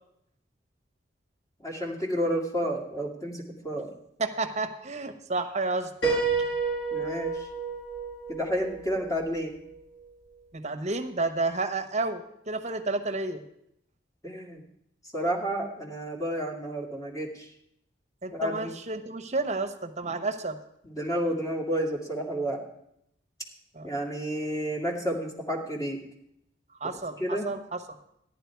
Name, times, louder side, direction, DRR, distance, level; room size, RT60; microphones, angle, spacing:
voice 1, 1.6-3.9 6.9-7.5 8.3-9.6 14.2-14.6 15.1-17.5 18.3-18.7 20.0-20.1 20.8-22.6 23.8-26.0 27.2-27.5, equal, 20° left, 0 dB, 2.3 m, -31 dB
voice 2, 4.2-6.1 10.5-13.4 18.2-20.6 23.7-23.9 26.8-27.8, right 3 dB, 40° right, 6 dB, 1.1 m, -31 dB
Piano, 6.0-9.8, right 4 dB, 75° left, 6.0 m, -30 dB
13.5 x 11.0 x 4.6 m, 0.75 s
head